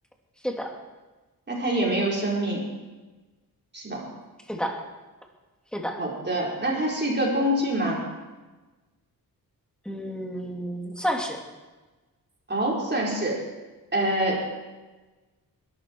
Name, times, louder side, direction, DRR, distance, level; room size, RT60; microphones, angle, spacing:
voice 1, 1.5-2.6 3.7-4.0 6.0-8.0 12.5-13.4 13.9-14.4, right 1 dB, 30° right, -3 dB, 4.8 m, -25 dB
voice 2, 9.8-11.4, equal, ahead, 1 dB, 2.6 m, -30 dB
21.5 x 12.5 x 4.7 m, 1.2 s
wide cardioid pair, 115°, 36 cm